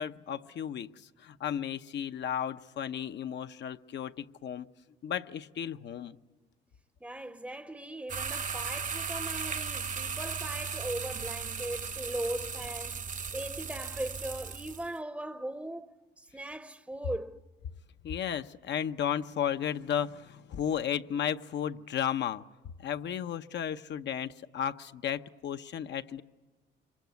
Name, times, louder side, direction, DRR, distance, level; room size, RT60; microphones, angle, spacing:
voice 1, 0.0-4.7 5.0-6.2 18.0-22.4 22.8-26.2, left 9 dB, 65° left, 0.8 m, -34 dB
voice 2, 7.0-13.0 13.3-17.4, right 1 dB, 5° right, 0.8 m, -39 dB
sound 1, 8.1-14.9, right 6 dB, 40° right, 0.9 m, -36 dB
26.0 x 24.0 x 9.4 m
cardioid pair, 85°, 20 cm